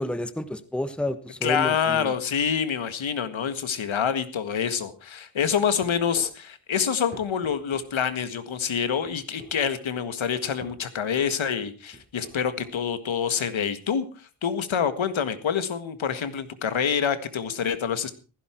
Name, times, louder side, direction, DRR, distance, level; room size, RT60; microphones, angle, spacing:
voice 1, 0.0-2.1, left 1 dB, ahead, 11 dB, 1.2 m, -30 dB
voice 2, 1.4-14.1 14.4-18.1, left 7 dB, 70° left, 11 dB, 1.8 m, -26 dB
sound 1, 5.5-6.3 7.1-7.9 9.1-9.5 10.6-10.8 11.9-12.7, right 3 dB, 20° right, 7.6 m, -44 dB
15.5 x 15.5 x 4.6 m, 0.35 s
wide cardioid pair, 130°, 49 cm